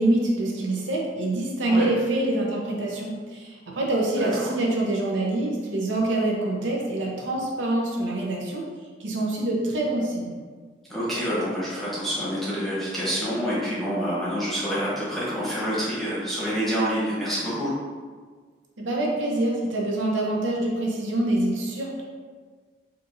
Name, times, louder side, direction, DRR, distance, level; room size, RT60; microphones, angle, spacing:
voice 1, 0.0-8.6 9.0-10.3 18.8-22.0, right 1 dB, 80° right, -2 dB, 0.7 m, -25 dB
voice 2, 4.2-4.5 10.9-17.7, equal, ahead, -10 dB, 1.0 m, -27 dB
4.3 x 2.5 x 2.6 m, 1.5 s
head